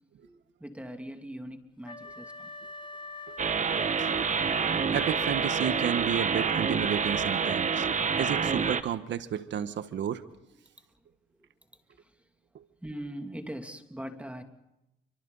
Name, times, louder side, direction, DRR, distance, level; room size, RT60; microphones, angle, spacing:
voice 1, 0.2-2.5 8.1-8.2 12.0-12.1 12.8-14.4, equal, 5° right, 5 dB, 2.8 m, -41 dB
Wind instrument woodwind instrument, 1.8-6.3, left 2 dB, 25° left, 1.7 m, -44 dB
sound 1, 3.4-8.8, right 5 dB, 35° right, 1.4 m, -27 dB
voice 2, 4.9-7.9 8.2-10.2 12.5-12.6, right 9 dB, 65° right, 11 dB, 1.4 m, -32 dB
29.5 x 25.0 x 4.1 m, 0.87 s
cardioid pair, 90°, 20 cm